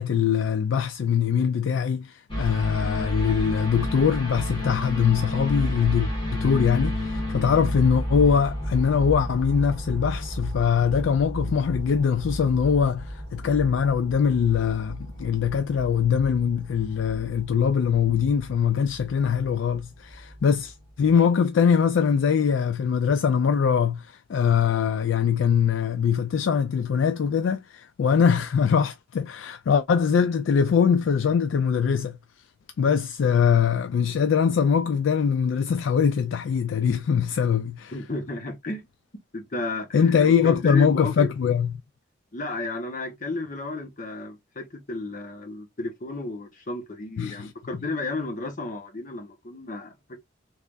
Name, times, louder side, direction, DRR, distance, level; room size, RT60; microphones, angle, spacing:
voice 1, 0.0-32.2 32.8-38.0 39.9-41.7 47.2-47.5, left 7 dB, 70° left, 0.3 m, -22 dB
sound 1, 2.3-20.7 21.0-21.1, left 1 dB, 25° left, 1.6 m, -32 dB
voice 2, 37.9-38.8 39.3-40.1 40.4-41.3 42.3-50.2, left 2 dB, 40° left, 0.9 m, -33 dB
3.3 x 3.3 x 2.5 m
head